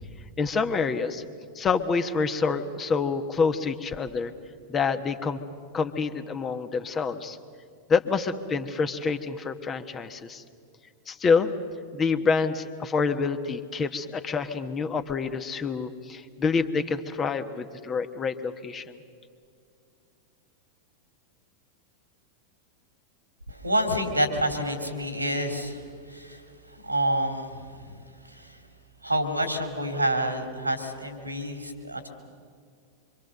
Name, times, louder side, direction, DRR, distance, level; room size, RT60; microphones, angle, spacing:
voice 1, 0.4-1.2 1.5-4.3 4.7-5.4 5.7-7.4 7.9-10.4 11.1-11.5 11.9-19.0, left 5 dB, 25° left, 9 dB, 1.2 m, -27 dB
voice 2, 23.5-28.6 29.0-32.1, right 1 dB, 85° right, 6 dB, 2.8 m, -28 dB
25.5 x 25.0 x 6.6 m, 2.2 s
figure-of-eight pair, 90°, 0 cm